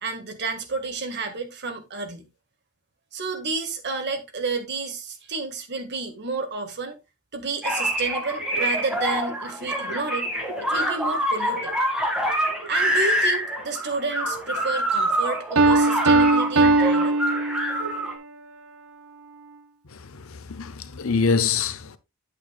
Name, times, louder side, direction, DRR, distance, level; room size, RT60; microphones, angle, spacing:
voice 1, 0.0-2.3 3.1-7.0 7.3-10.3 10.6-11.7 12.6-17.2, right 4 dB, 55° right, 1.6 m, -31 dB
sound 1, 7.6-18.1, right 1 dB, 5° right, 1.9 m, -26 dB
Piano, 15.6-18.0, right 2 dB, 80° right, 0.9 m, -19 dB
voice 2, 20.0-22.0, left 5 dB, 75° left, 0.8 m, -25 dB
9.2 x 8.5 x 2.3 m
head